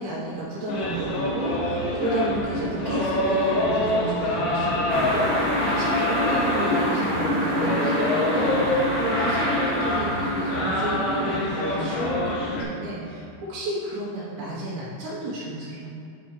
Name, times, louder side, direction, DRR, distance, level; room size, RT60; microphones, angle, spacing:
voice 1, 0.0-15.9, right 1 dB, 75° right, -8 dB, 3.7 m, -32 dB
sound 1, 0.7-12.6, left 1 dB, 75° left, 3.5 m, -25 dB
sound 2, 4.9-12.5, equal, 55° right, 2.3 m, -29 dB
9.4 x 4.1 x 4.9 m, 2.6 s
omnidirectional pair, 5.3 m